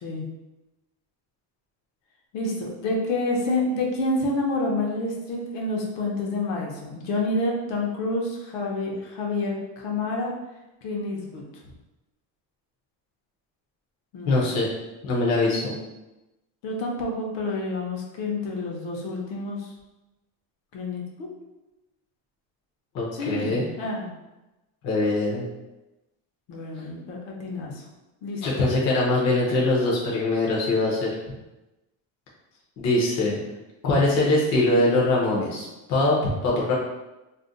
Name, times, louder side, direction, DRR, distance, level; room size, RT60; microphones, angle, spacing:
voice 1, 2.3-10.3 10.8-11.4 14.1-14.4 16.6-19.7 20.7-21.3 23.1-24.1 26.5-27.8 28.2-28.6, left 2 dB, 70° left, -1 dB, 0.8 m, -28 dB
voice 2, 14.3-14.7 15.0-15.7 22.9-23.7 24.8-25.4 28.4-31.4 32.8-33.4 33.8-36.7, left 2 dB, 35° left, -4 dB, 0.5 m, -22 dB
2.5 x 2.1 x 3.7 m, 1.0 s
cardioid pair, 175°, 48 cm